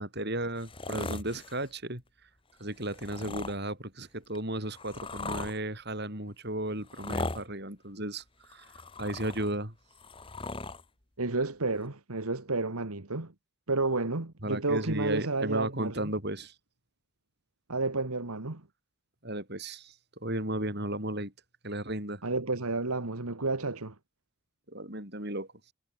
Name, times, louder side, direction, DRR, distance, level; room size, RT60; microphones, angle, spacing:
voice 1, 0.0-2.0 2.6-8.7 9.0-9.7 14.4-16.5 19.2-19.9 20.2-21.3 21.6-22.2 24.7-25.5, right 1 dB, 45° right, 7.5 m, -34 dB
sound 1, 0.6-1.7 2.8-3.6 4.3-5.6 6.8-7.4 8.4-9.5 9.9-10.8 11.8-11.9, left 3 dB, 25° left, 1.4 m, -38 dB
voice 2, 11.2-13.3 13.7-16.1 17.7-18.6 22.2-24.0, right 3 dB, 80° right, 1.8 m, -31 dB
head